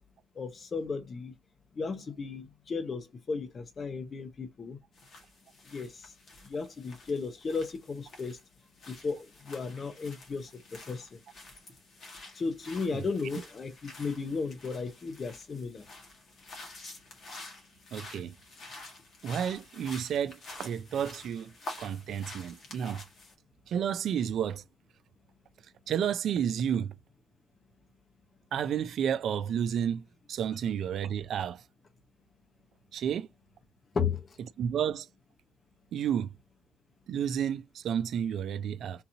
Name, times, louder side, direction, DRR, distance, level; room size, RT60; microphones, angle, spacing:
voice 1, 0.4-1.3 1.8-4.8 5.7-6.1 6.4-8.4 8.9-10.5 10.9-11.2 12.3-15.8 33.9-34.2, left 5 dB, 40° left, 0.8 m, -34 dB
sound 1, 4.9-23.3, left 2 dB, 55° left, 1.6 m, -49 dB
voice 2, 17.9-18.3 19.2-21.5 21.8-23.1 23.7-24.6 25.9-27.0 28.5-31.6 32.9-33.3 34.6-35.1 35.9-36.3 37.1-39.0, right 8 dB, 70° right, 0.4 m, -31 dB
3.8 x 2.9 x 2.7 m
cardioid pair, 90°, 0 cm